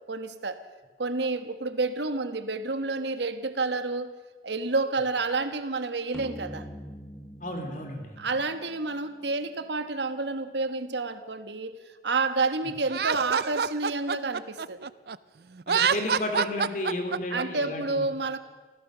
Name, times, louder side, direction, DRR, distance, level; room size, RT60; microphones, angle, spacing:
voice 1, 0.1-0.6 1.0-4.1 4.4-6.7 8.2-11.7 12.0-14.9 17.3-18.4, right 3 dB, 80° right, 10 dB, 1.3 m, -29 dB
sound 1, 6.1-9.6, equal, 5° left, 0.9 m, -44 dB
voice 2, 7.4-8.1 15.7-18.1, left 1 dB, 45° left, 4 dB, 3.4 m, -32 dB
Laughter, 12.9-15.2 15.6-17.4, right 6 dB, 60° right, 0.5 m, -26 dB
25.0 x 16.0 x 6.7 m, 1.4 s
head